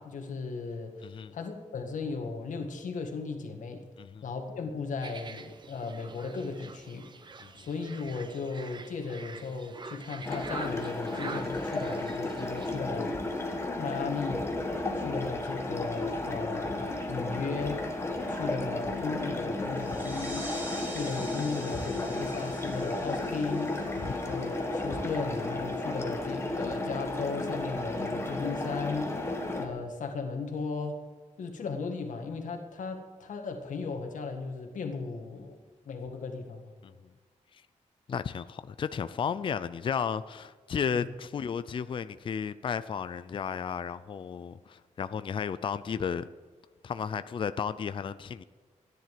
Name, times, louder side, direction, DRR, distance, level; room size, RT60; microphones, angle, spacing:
voice 1, 0.0-3.8 4.2-7.1 7.6-13.4 13.8-14.5 14.9-17.8 18.3-20.5 20.9-23.8 24.2-29.2 29.6-31.0 31.4-35.6 35.9-36.7, left 4 dB, 75° left, 1.8 m, -36 dB
voice 2, 1.0-1.3 4.0-4.3 7.4-7.7 18.3-18.4 24.0-24.1 36.8-36.9 37.5-37.6 38.1-46.3 46.8-48.4, left 7 dB, 40° left, 0.4 m, -33 dB
sound 1, 5.0-12.8, right 4 dB, 35° right, 0.9 m, -45 dB
sound 2, 10.2-29.7, left 2 dB, 20° left, 1.6 m, -33 dB
sound 3, 19.7-25.0, right 1 dB, 15° right, 3.8 m, -45 dB
14.5 x 10.5 x 7.6 m
wide cardioid pair, 175°, 13 cm